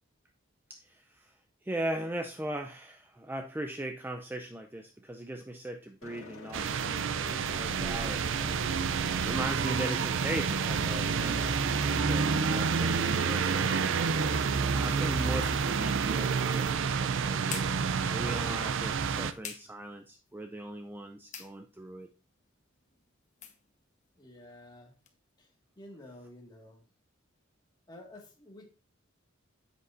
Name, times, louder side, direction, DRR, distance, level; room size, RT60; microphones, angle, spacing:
voice 1, 0.7-1.3 1.6-8.2 9.2-11.6 11.9-14.1 14.7-17.8 18.1-22.1, right 1 dB, 10° right, 5 dB, 0.5 m, -39 dB
sound 1, 6.0-15.5, left 3 dB, 70° left, 1.9 m, -47 dB
sound 2, 6.5-19.3, right 5 dB, 60° right, 0.5 m, -29 dB
sound 3, 18.7-25.2, left 7 dB, 35° left, 1.2 m, -51 dB
voice 2, 24.2-24.9 25.4-25.5 25.8-26.8 27.9-28.7, left 1 dB, 20° left, 1 dB, 1.9 m, -50 dB
9.7 x 7.9 x 2.6 m, 0.30 s
head